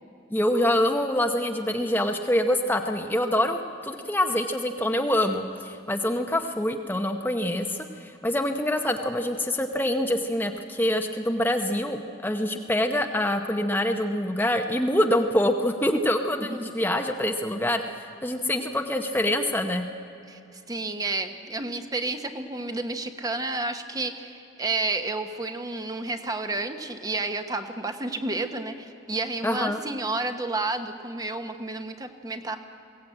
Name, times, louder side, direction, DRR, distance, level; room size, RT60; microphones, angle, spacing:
voice 1, 0.3-19.9 29.4-29.8, left 1 dB, 10° left, 5 dB, 0.8 m, -25 dB
voice 2, 20.3-32.6, right 2 dB, 20° right, 7 dB, 1.0 m, -31 dB
22.0 x 17.0 x 8.8 m, 2.8 s
head